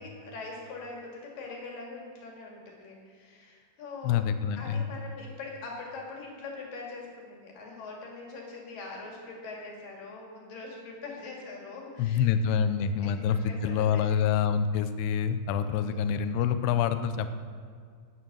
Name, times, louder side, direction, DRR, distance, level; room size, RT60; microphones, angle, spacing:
voice 1, 0.0-4.2 4.6-12.3 13.0-14.2 15.6-16.2, left 3 dB, 55° left, -2 dB, 3.8 m, -43 dB
voice 2, 4.0-4.8 12.0-17.3, left 7 dB, 85° left, 10 dB, 2.5 m, -26 dB
13.0 x 9.3 x 6.2 m, 2.1 s
omnidirectional pair, 5.1 m